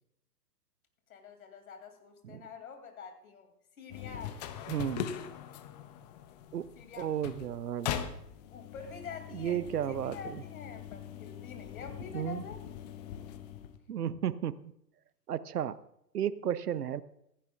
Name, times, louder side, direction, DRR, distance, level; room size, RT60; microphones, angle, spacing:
voice 1, 1.1-3.5 3.8-4.4 6.8-7.1 8.5-12.6, left 5 dB, 60° left, 5 dB, 2.6 m, -46 dB
sound 1, 3.9-13.8, left 9 dB, 25° left, 0.7 m, -41 dB
voice 2, 4.7-5.3 6.5-6.7 7.0-8.0 9.3-10.4 12.1-12.4 13.9-14.7 15.3-15.8 16.1-17.0, right 10 dB, 70° right, 18 dB, 0.7 m, -33 dB
15.5 x 14.5 x 2.4 m, 0.78 s
figure-of-eight pair, 115°, 49 cm